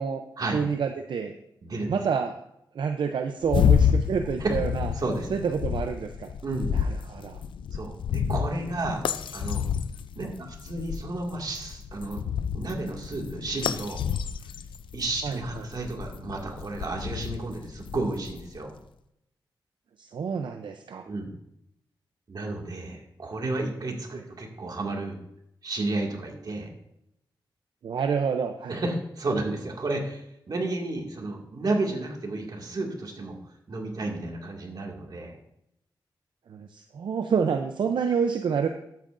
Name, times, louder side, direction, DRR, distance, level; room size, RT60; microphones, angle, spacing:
voice 1, 0.5-1.4 1.9-2.4 2.7-4.9 5.3-6.3 6.7-7.4 10.2-10.3 15.2-15.4 20.0-21.1 24.1-24.2 27.8-28.8 36.5-38.7, right 6 dB, 75° right, 6 dB, 0.6 m, -28 dB
voice 2, 1.6-1.9 4.4-4.6 5.0-5.3 6.4-6.7 7.7-9.7 10.2-12.2 12.5-14.0 14.9-18.7 21.1-21.3 22.3-25.2 25.6-26.7 28.7-33.4 33.7-35.4, right 2 dB, 55° right, 1 dB, 2.1 m, -32 dB
sound 1, 3.4-18.6, left 8 dB, 90° left, 0.4 m, -29 dB
12.5 x 9.1 x 2.6 m, 0.79 s
cardioid pair, 80°, 8 cm